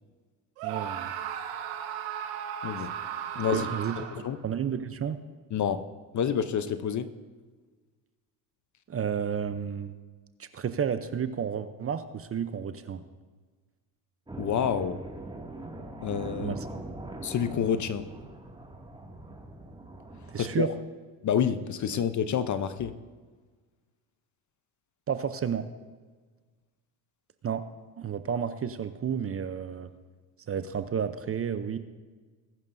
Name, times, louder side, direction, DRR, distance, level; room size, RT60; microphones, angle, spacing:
voice 1, 0.6-1.1 3.5-4.0 4.4-5.2 8.9-10.0 10.4-13.0 16.4-16.7 20.3-20.7 25.1-25.7 27.4-27.6 28.0-29.9 30.5-31.8, right 7 dB, 30° right, 11 dB, 0.7 m, -31 dB
Screaming, 0.6-4.4, right 9 dB, 80° right, 1.4 m, -35 dB
voice 2, 3.3-3.7 4.0-4.4 5.5-5.9 6.1-7.1 14.4-15.0 16.0-16.6 17.2-18.1 20.4-20.7 21.2-22.9, left 8 dB, 40° left, 12 dB, 0.8 m, -28 dB
sound 1, 14.3-20.6, right 2 dB, 10° right, 2.2 m, -41 dB
21.5 x 10.5 x 2.7 m, 1.4 s
supercardioid pair, 85°, 48 cm